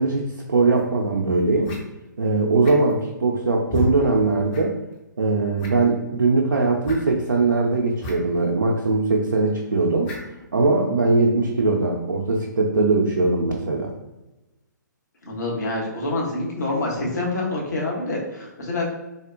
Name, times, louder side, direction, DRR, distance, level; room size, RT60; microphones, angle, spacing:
voice 1, 0.0-1.7 2.2-4.8 5.2-10.1 10.5-13.9, right 3 dB, 70° right, -1 dB, 0.4 m, -21 dB
sound 1, 0.8-0.9 1.6-1.8 2.6-3.0 3.7-3.9 4.5-4.6 4.9-5.0 5.6-5.9 6.8-7.0 8.0-8.1 8.4-8.5 10.0-10.3, left 2 dB, 25° left, 0.6 m, -30 dB
voice 2, 15.2-18.9, left 2 dB, 55° left, -3 dB, 1.0 m, -26 dB
3.6 x 2.0 x 2.5 m, 1.0 s
figure-of-eight pair, 125°, 11 cm